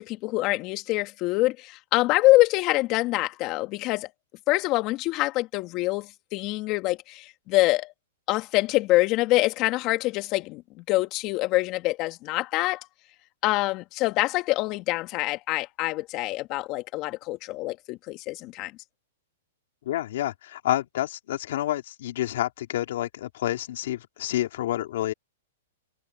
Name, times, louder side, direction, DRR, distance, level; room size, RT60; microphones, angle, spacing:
voice 1, 0.0-4.1 4.5-7.9 8.3-12.9 13.4-18.7, left 19 dB, 40° left, 2.6 m, -25 dB
voice 2, 19.8-25.1, left 13 dB, 65° left, 3.3 m, -29 dB
hypercardioid pair, 135°, 0 cm